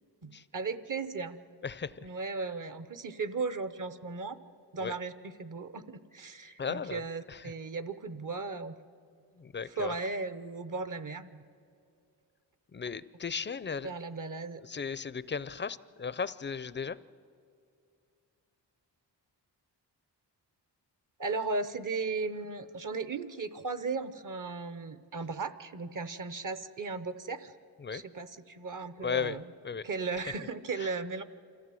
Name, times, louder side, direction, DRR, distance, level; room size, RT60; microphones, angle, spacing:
voice 1, 0.2-1.4 2.0-4.4 4.7-8.7 9.6-11.4 13.8-14.6 21.2-27.5 27.9-29.4 29.8-31.2, right 4 dB, 50° right, 12 dB, 0.9 m, -36 dB
voice 2, 1.6-2.0 4.8-4.9 6.6-7.0 7.3-7.4 9.4-9.9 12.7-13.9 14.7-17.0 27.8-28.0 29.0-29.8 30.8-30.9, left 6 dB, 25° left, 17 dB, 0.5 m, -36 dB
26.5 x 14.0 x 7.7 m, 2.4 s
wide cardioid pair, 90°, 42 cm